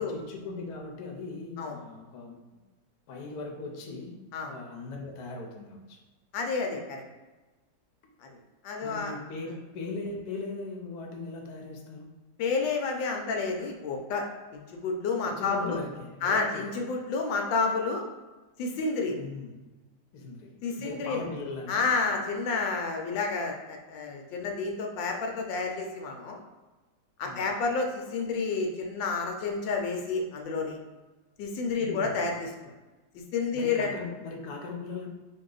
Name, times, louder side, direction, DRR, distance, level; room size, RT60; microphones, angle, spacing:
voice 1, 0.0-2.4 3.1-4.2 4.5-6.0 8.8-12.1 15.2-16.8 19.2-19.7 20.1-21.9 27.2-27.6 31.7-32.2 33.5-35.1, left 3 dB, 65° left, 1 dB, 1.1 m, -39 dB
voice 2, 6.3-7.0 8.2-8.3 8.6-9.2 12.4-14.3 14.5-15.8 16.2-18.0 18.6-19.2 20.6-21.2 21.7-26.4 27.2-30.8 31.4-32.7 33.1-33.9, left 4 dB, 85° left, 2 dB, 1.3 m, -30 dB
4.1 x 2.7 x 3.8 m, 1.2 s
omnidirectional pair, 2.0 m